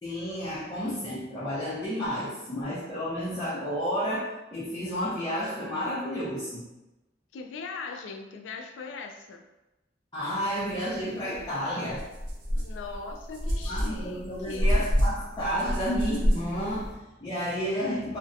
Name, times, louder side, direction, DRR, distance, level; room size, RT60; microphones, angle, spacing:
voice 1, 0.0-6.7 10.1-12.1 13.6-18.2, equal, 25° left, -11 dB, 0.5 m, -31 dB
voice 2, 7.3-9.4 12.5-14.8, left 4 dB, 90° left, 4 dB, 0.3 m, -40 dB
sound 1, 11.3-11.4 11.9-16.9, equal, 45° right, 0.5 m, -28 dB
2.6 x 2.1 x 2.5 m, 1.0 s
head